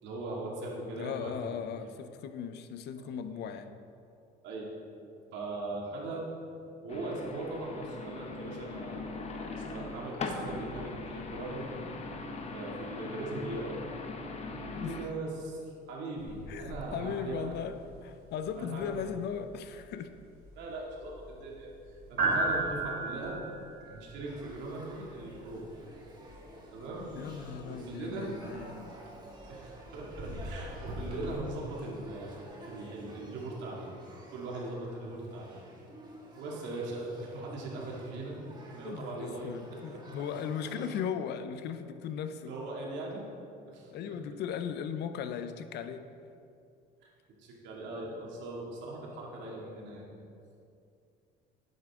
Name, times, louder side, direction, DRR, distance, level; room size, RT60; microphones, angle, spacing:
voice 1, 0.0-1.9 3.0-3.5 4.4-4.7 5.3-6.3 6.8-11.8 12.5-13.8 14.6-15.6 15.9-17.5 18.6-19.1 20.6-23.4 23.8-25.6 26.7-27.1 27.6-28.5 29.5-33.9 34.3-35.6 36.3-38.4 38.7-39.5 39.9-40.0 42.5-43.3 43.7-44.1 47.4-50.1, right 2 dB, 75° right, -3 dB, 2.4 m, -40 dB
voice 2, 1.0-3.7 14.7-15.1 16.5-20.2 27.1-29.0 38.8-42.5 43.9-46.1, left 8 dB, 65° left, 10 dB, 0.6 m, -38 dB
sound 1, 6.9-15.0, left 3 dB, 35° left, 0.9 m, -40 dB
sound 2, 16.2-31.3, right 2 dB, 55° right, 2.4 m, -39 dB
Male speech man speaking / Child speech kid speaking / Conversation, 24.2-41.0, right 1 dB, 25° right, 1.7 m, -51 dB
11.0 x 8.0 x 3.7 m, 2.5 s
cardioid pair, 110°, 19 cm